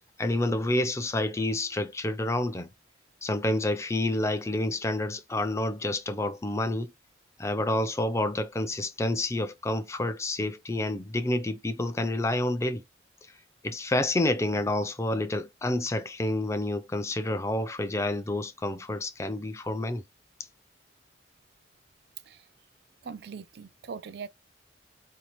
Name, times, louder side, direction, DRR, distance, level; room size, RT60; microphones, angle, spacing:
voice 1, 0.2-2.7 3.2-6.9 7.4-12.8 13.6-20.0, left 1 dB, 15° left, 0.4 m, -29 dB
voice 2, 23.0-24.3, right 5 dB, 60° right, 0.4 m, -41 dB
4.7 x 2.8 x 3.0 m
head